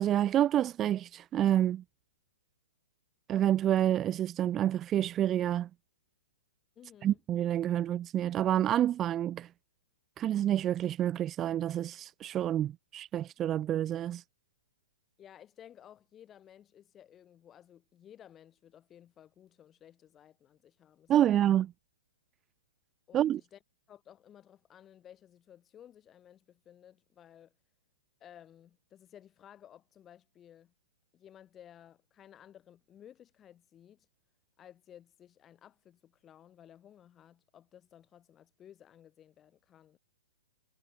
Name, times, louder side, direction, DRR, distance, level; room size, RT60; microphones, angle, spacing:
voice 1, 0.0-1.8 3.3-5.7 7.0-9.5 10.2-14.2 21.1-21.7 23.1-23.4, right 11 dB, 20° right, 0.7 m, -28 dB
voice 2, 6.7-7.2 15.2-21.1 21.4-21.5 23.1-23.6 23.9-27.5 28.2-30.7 31.1-34.1 34.6-40.0, left 10 dB, 15° left, 4.9 m, -56 dB
hypercardioid pair, 150°, 0 cm